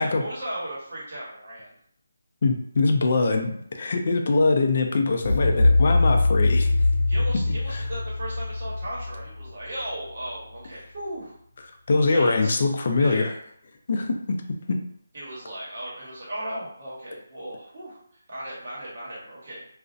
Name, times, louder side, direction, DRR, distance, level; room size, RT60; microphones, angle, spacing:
voice 1, 0.0-1.7 7.1-11.3 12.1-12.7 13.0-13.3 15.1-19.7, right 1 dB, 45° right, -6 dB, 1.1 m, -36 dB
voice 2, 2.4-6.7 7.5-7.8 11.9-13.3 13.9-14.4 14.7-14.8, left 3 dB, 45° left, 4 dB, 0.3 m, -23 dB
sound 1, 5.2-10.1, left 2 dB, 70° right, 0.8 m, -22 dB
2.4 x 2.0 x 2.6 m, 0.67 s
hypercardioid pair, 170°, 0 cm